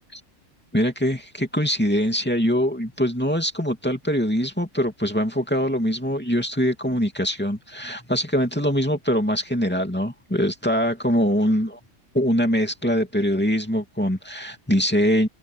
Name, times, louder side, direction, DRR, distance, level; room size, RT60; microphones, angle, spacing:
voice 1, 0.7-11.8 12.1-15.3, equal, 5° left, 2.7 m, -23 dB
omnidirectional pair, 1.5 m